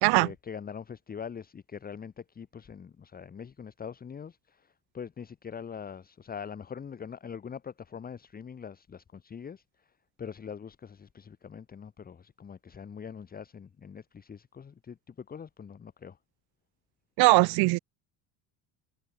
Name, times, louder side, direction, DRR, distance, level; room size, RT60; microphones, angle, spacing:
voice 1, 0.1-9.9 10.2-16.2, left 7 dB, 20° left, 1.7 m, -43 dB
voice 2, 17.2-17.8, right 24 dB, 60° right, 0.5 m, -20 dB
cardioid pair, 175°, 44 cm